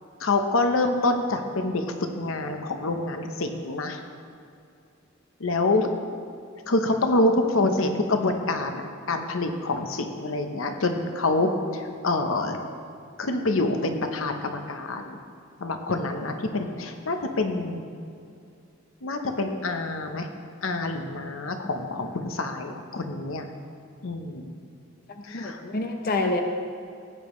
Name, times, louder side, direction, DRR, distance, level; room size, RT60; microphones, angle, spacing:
voice 1, 0.2-4.0 5.4-5.9 6.7-12.6 13.2-15.2 15.6-17.8 19.0-20.3 20.6-23.5 24.0-24.5 25.2-25.6, left 2 dB, 85° left, 5 dB, 0.9 m, -26 dB
voice 2, 25.3-26.4, left 2 dB, 50° left, 4 dB, 0.7 m, -27 dB
16.0 x 9.0 x 3.2 m, 2.5 s
head